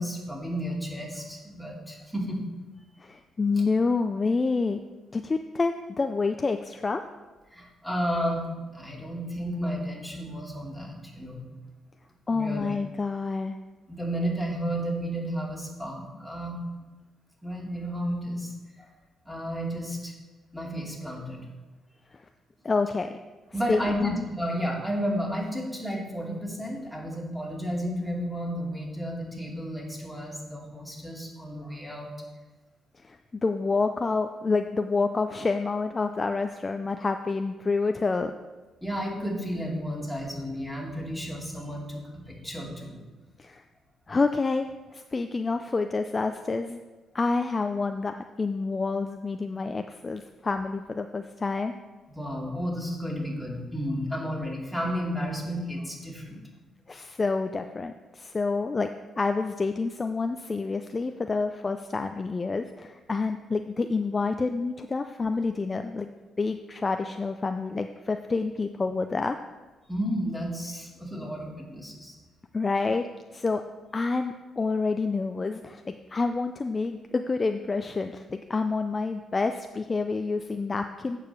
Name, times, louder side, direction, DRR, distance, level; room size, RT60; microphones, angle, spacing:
voice 1, 0.0-2.4 3.5-3.6 7.5-8.4 8.7-11.4 12.3-12.7 13.9-16.6 17.4-18.9 19.3-20.1 20.5-21.4 23.5-32.1 38.8-43.0 52.1-56.4 69.9-72.2, equal, ahead, -2 dB, 2.4 m, -32 dB
voice 2, 3.0-4.8 5.1-7.1 12.3-13.6 22.1-22.3 22.6-23.1 23.7-24.1 33.0-38.3 43.4-43.6 44.1-46.8 47.1-51.7 56.9-66.1 66.4-69.4 72.5-73.1 73.3-73.6 73.9-81.2, left 4 dB, 30° left, 7 dB, 0.4 m, -28 dB
8.7 x 4.8 x 6.9 m, 1.2 s
cardioid pair, 90°, 0 cm